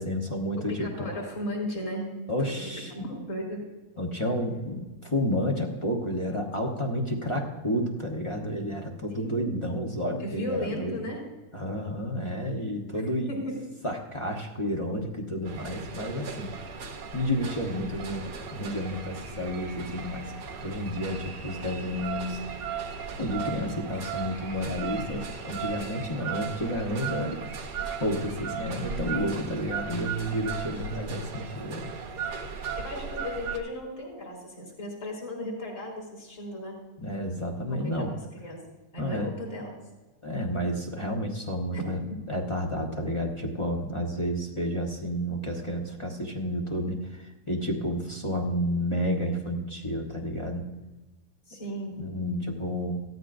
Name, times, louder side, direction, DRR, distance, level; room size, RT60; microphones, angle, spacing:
voice 1, 0.0-1.1 2.3-3.1 4.0-10.9 11.5-13.3 13.8-16.5 17.1-20.3 20.6-22.4 23.2-27.4 28.0-31.9 37.0-38.1 39.0-39.3 40.2-50.7 51.9-53.0, equal, 20° left, 0 dB, 1.0 m, -31 dB
voice 2, 0.8-2.1 2.4-2.7 3.0-3.6 9.1-9.7 10.2-11.2 13.0-13.6 30.7-30.9 32.8-36.8 37.7-37.8 38.4-38.6 38.9-39.7 41.7-42.0 51.5-52.0, equal, 45° left, -1 dB, 4.1 m, -35 dB
sound 1, 15.4-33.6, right 6 dB, 75° right, 1.7 m, -36 dB
16.5 x 13.5 x 2.6 m, 1.1 s
omnidirectional pair, 1.8 m